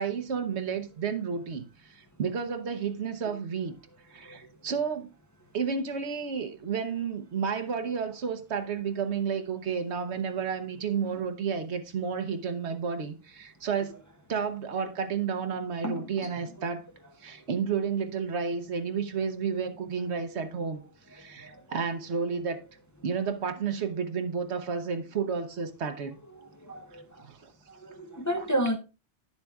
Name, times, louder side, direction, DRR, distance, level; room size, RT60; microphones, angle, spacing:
voice 1, 0.0-3.7 4.1-5.1 5.5-13.9 14.3-16.8 17.2-20.8 21.1-22.6 23.0-26.2 27.2-27.5 28.4-28.5, right 6 dB, 70° right, 1.2 m, -31 dB
voice 2, 26.6-27.0 27.8-28.8, right 1 dB, 20° left, 0.7 m, -30 dB
11.0 x 7.0 x 2.3 m
omnidirectional pair, 1.2 m